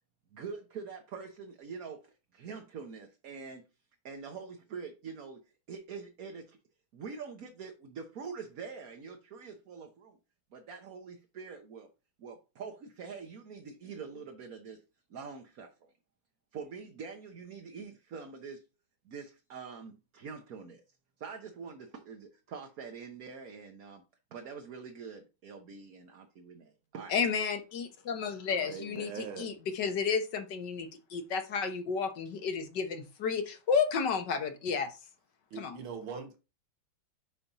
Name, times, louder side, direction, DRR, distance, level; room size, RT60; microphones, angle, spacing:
voice 1, 0.3-3.6 4.0-6.6 6.9-10.2 10.5-11.9 12.2-14.8 15.1-15.7 16.5-18.6 19.0-20.8 21.2-24.0 24.3-27.1, right 5 dB, 55° right, 1.3 m, -45 dB
voice 2, 27.1-34.9 35.6-35.8, left 6 dB, 60° left, 1.7 m, -32 dB
voice 3, 28.7-29.5 35.5-36.4, right 6 dB, 85° right, 2.1 m, -41 dB
7.0 x 4.2 x 5.5 m
omnidirectional pair, 2.2 m